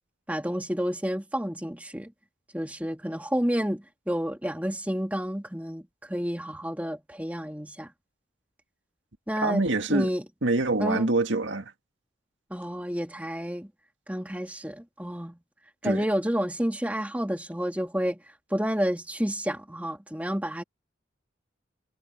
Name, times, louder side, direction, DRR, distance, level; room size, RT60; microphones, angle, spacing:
voice 1, 0.3-2.1 2.5-7.9 9.3-10.2 10.8-11.1 12.5-13.7 14.1-15.4 15.8-18.2 18.5-20.6, equal, 10° right, 2.2 m, -30 dB
voice 2, 9.4-10.1 10.4-11.7 15.8-16.0, right 2 dB, 80° right, 1.9 m, -25 dB
head